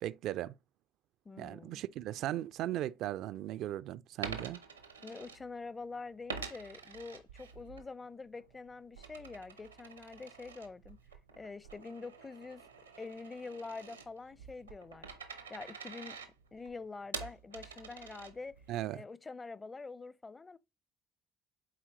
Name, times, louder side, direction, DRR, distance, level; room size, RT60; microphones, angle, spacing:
voice 1, 0.0-0.5 1.4-4.6 18.7-19.0, right 13 dB, 60° right, 0.3 m, -37 dB
voice 2, 1.2-1.8 5.0-11.0 11.4-12.6 13.0-15.1 15.5-16.2 16.5-18.6 18.9-20.6, left 3 dB, 25° left, 0.6 m, -46 dB
Coin (dropping), 4.1-5.8 6.3-7.9 8.2-18.7, right 5 dB, 90° right, 0.7 m, -47 dB
7.5 x 4.3 x 3.0 m
hypercardioid pair, 55°, 0 cm